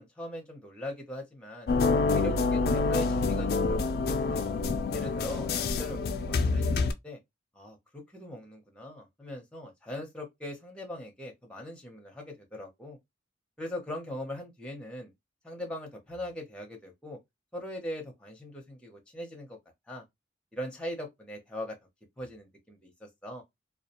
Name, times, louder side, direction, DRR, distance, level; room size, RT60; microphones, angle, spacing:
voice 1, 0.0-1.7 2.1-4.5 4.9-7.2 7.5-13.0 13.6-15.1 15.4-17.2 17.5-19.6 19.9-20.0 20.5-21.8 22.2-23.4, left 1 dB, 5° left, 0.6 m, -40 dB
sound 1, 1.7-6.9, left 3 dB, 55° left, 0.3 m, -27 dB
2.3 x 2.1 x 2.8 m
head